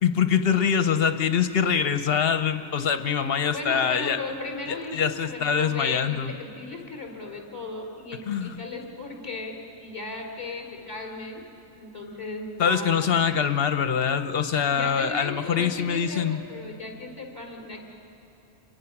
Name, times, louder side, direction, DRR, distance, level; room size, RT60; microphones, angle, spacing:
voice 1, 0.0-4.2 4.9-6.3 8.3-8.6 12.6-16.4, left 7 dB, 60° left, 9 dB, 1.1 m, -24 dB
voice 2, 3.5-11.5 11.7-13.2 14.7-17.8, left 3 dB, 25° left, 0 dB, 3.5 m, -36 dB
28.5 x 22.5 x 6.0 m, 2.6 s
omnidirectional pair, 1.2 m